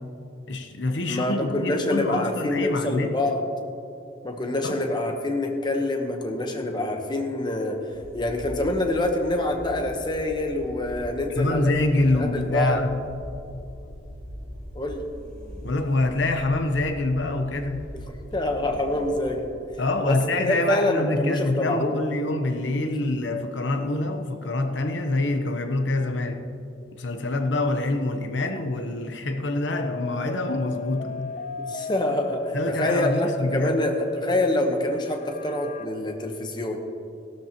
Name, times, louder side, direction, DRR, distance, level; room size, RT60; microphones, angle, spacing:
voice 1, 0.5-3.1 4.6-4.8 11.4-13.3 15.6-17.9 19.8-26.4 27.0-31.3 32.5-33.8, left 2 dB, 85° left, 0.9 m, -26 dB
voice 2, 1.0-3.4 4.2-7.8 8.1-11.7 12.1-12.8 14.7-15.0 18.1-19.5 20.0-20.2 20.4-22.0 31.7-36.8, left 1 dB, 25° left, 1.0 m, -26 dB
sound 1, 7.9-19.6, equal, 70° left, 3.1 m, -41 dB
High Tones, 29.7-35.9, equal, 40° left, 0.3 m, -34 dB
17.5 x 12.5 x 3.0 m
head